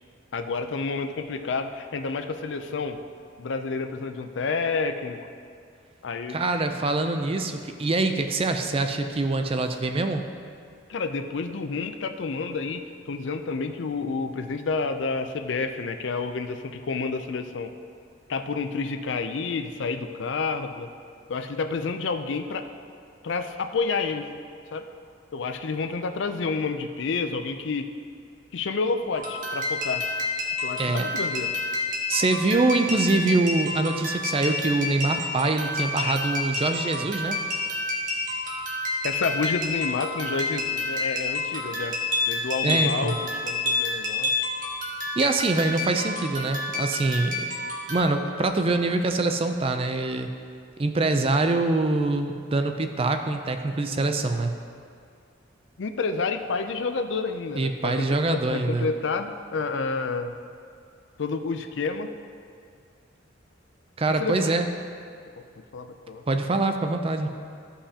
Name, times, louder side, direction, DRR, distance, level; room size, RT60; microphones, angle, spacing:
voice 1, 0.3-3.0 3.4-5.2 6.0-6.5 10.9-17.7 18.3-20.9 21.3-22.7 23.2-24.3 24.7-24.9 25.3-27.9 28.5-30.1 30.6-31.5 36.0-36.2 39.0-42.0 42.3-43.2 43.4-44.3 55.8-60.4 61.2-62.1 64.1-64.5 65.4-65.5 65.7-66.2, left 4 dB, 65° left, 8 dB, 0.4 m, -29 dB
voice 2, 6.3-10.2 30.8-31.1 32.1-37.4 42.6-43.2 45.2-47.5 47.9-50.3 50.8-54.6 57.6-58.9 64.0-64.7 66.3-67.3, right 2 dB, 30° right, 6 dB, 0.4 m, -24 dB
sound 1, 29.1-48.0, left 2 dB, 45° right, 1.3 m, -29 dB
13.5 x 5.6 x 2.8 m, 2.3 s
head